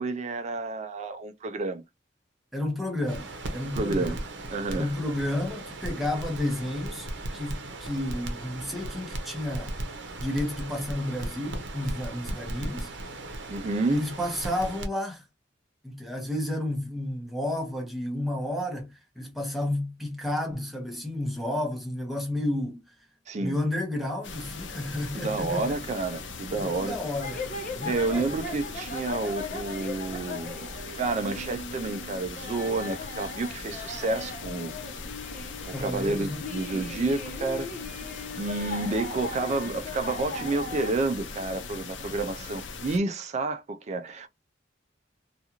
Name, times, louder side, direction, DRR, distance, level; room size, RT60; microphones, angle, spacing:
voice 1, 0.0-1.8 3.7-4.2 4.5-4.9 13.5-14.0 23.3-23.6 25.1-27.0 27.8-34.7 35.7-37.7 38.3-44.3, right 3 dB, 40° right, 0.3 m, -30 dB
voice 2, 2.5-4.2 4.7-7.1 7.3-9.7 10.2-12.9 13.9-15.2 15.8-18.9 19.2-22.8 23.4-25.8 26.5-28.3 35.7-36.4, left 1 dB, ahead, 0.9 m, -31 dB
Crackle, 3.1-14.9, right 1 dB, 75° right, 0.7 m, -37 dB
sound 1, 24.2-43.0, left 4 dB, 80° left, 0.5 m, -40 dB
sound 2, 27.1-40.9, left 3 dB, 45° left, 0.9 m, -39 dB
2.5 x 2.4 x 2.8 m
head